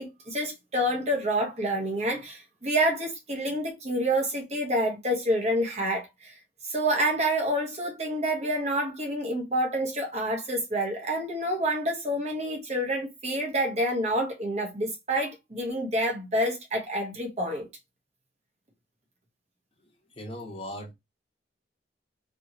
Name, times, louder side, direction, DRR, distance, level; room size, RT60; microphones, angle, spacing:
voice 1, 0.0-6.3 6.7-17.7, right 1 dB, 35° right, 1.2 m, -28 dB
voice 2, 20.2-20.9, left 1 dB, 30° left, 1.0 m, -38 dB
3.3 x 3.0 x 2.7 m
head